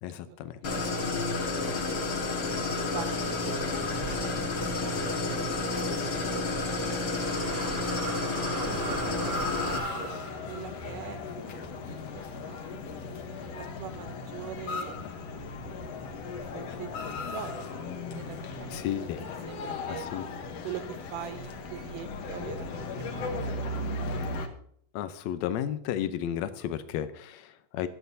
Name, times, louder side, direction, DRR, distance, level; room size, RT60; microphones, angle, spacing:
voice 1, 0.0-0.9 13.0-13.1 18.7-19.2 19.9-20.3 24.9-27.9, left 10 dB, 80° left, 11 dB, 1.6 m, -33 dB
Idling, 0.6-9.8, left 3 dB, 45° left, 1.3 m, -30 dB
voice 2, 2.9-5.5 5.9-6.0 6.3-7.0 7.5-7.6 8.1-9.7 9.9-12.8 13.4-15.0 16.5-17.7 18.1-18.7 19.2-20.1 20.6-20.8 21.1-23.3 23.6-24.0, right 8 dB, 75° right, 9 dB, 2.3 m, -43 dB
sound 1, 5.9-12.8 13.1-13.2 14.0-14.5 15.2-15.3 15.6-17.3 17.6-18.2 18.4-22.2 23.0-23.9, right 6 dB, 55° right, 1.2 m, -43 dB
sound 2, 8.6-24.5, left 3 dB, 65° left, 1.7 m, -37 dB
24.0 x 8.2 x 2.7 m, 0.66 s
omnidirectional pair, 4.0 m